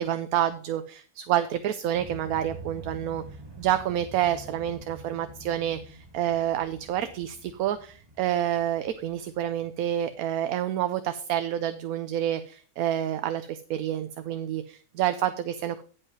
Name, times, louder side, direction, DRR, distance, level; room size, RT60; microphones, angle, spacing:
voice 1, 0.0-3.2 3.6-15.8, right 11 dB, 75° right, 10 dB, 1.1 m, -28 dB
sound 1, 1.9-10.4, right 2 dB, 25° right, 0.5 m, -46 dB
9.6 x 5.5 x 5.3 m, 0.42 s
omnidirectional pair, 1.6 m